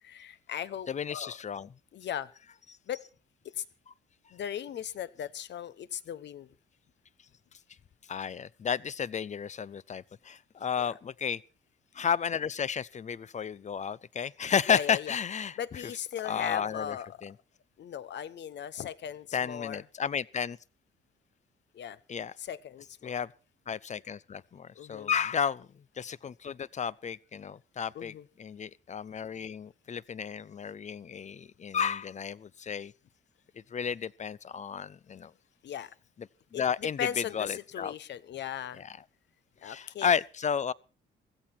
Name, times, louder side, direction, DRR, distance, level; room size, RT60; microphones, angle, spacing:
voice 1, 0.0-1.4 1.9-2.3 2.9-3.0 3.5-3.6 4.3-6.5 10.8-11.0 14.7-15.2 15.6-17.1 17.8-19.8 21.7-22.0 22.4-23.1 24.7-25.1 27.9-28.2 35.6-35.9 36.5-38.8 39.6-40.2, left 9 dB, 60° left, 1.0 m, -37 dB
voice 2, 0.9-1.7 8.1-11.4 11.9-15.8 16.2-17.3 19.3-20.6 22.1-22.3 23.0-23.3 23.7-32.9 33.7-35.3 36.2-37.9 38.8-39.0 39.6-40.7, left 7 dB, 35° left, 0.6 m, -32 dB
16.0 x 14.0 x 4.4 m
cardioid pair, 90°, 20 cm